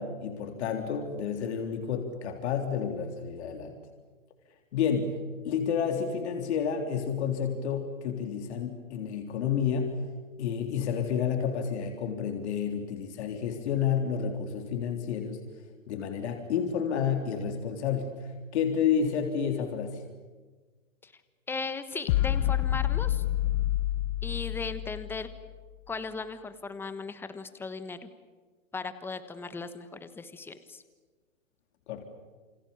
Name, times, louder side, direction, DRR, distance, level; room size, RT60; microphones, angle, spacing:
voice 1, 0.0-3.8 4.7-5.1 5.4-10.0 10.4-15.4 15.9-18.1 18.5-20.0 31.9-32.0, left 7 dB, 55° left, 4 dB, 3.6 m, -30 dB
voice 2, 21.5-23.2 24.2-25.3 25.9-28.1 28.7-30.8, left 4 dB, 5° left, 11 dB, 1.2 m, -37 dB
sound 1, 22.1-25.5, left 13 dB, 35° left, 0.8 m, -28 dB
28.5 x 26.0 x 7.2 m, 1.4 s
hypercardioid pair, 140°, 39 cm